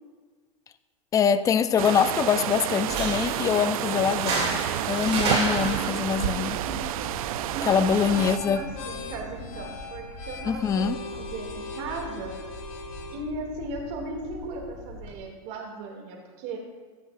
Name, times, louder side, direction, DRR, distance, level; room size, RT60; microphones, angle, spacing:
voice 1, 1.1-4.6 4.9-6.6 7.7-8.6 10.4-11.0, left 7 dB, 20° left, 12 dB, 0.4 m, -24 dB
sound 1, 1.8-8.4, right 13 dB, 75° right, 0.5 m, -29 dB
sound 2, 2.8-9.8, right 3 dB, 35° right, 2.9 m, -33 dB
sound 3, 6.4-15.2, left 3 dB, 70° left, 3.3 m, -40 dB
voice 2, 6.4-6.8 7.5-12.3 13.1-16.6, right 2 dB, 55° right, 0 dB, 2.5 m, -37 dB
15.5 x 9.8 x 2.6 m, 1.5 s
supercardioid pair, 140°, 18 cm